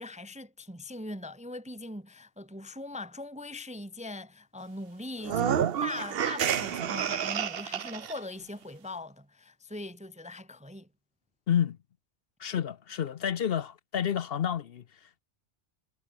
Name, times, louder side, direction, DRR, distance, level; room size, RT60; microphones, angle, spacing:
voice 1, 0.0-10.9, left 2 dB, 10° right, 0.6 m, -41 dB
sound 1, 5.2-8.2, right 8 dB, 60° right, 1.0 m, -29 dB
voice 2, 11.5-11.8 12.4-15.2, left 9 dB, 60° left, 0.9 m, -30 dB
omnidirectional pair, 1.2 m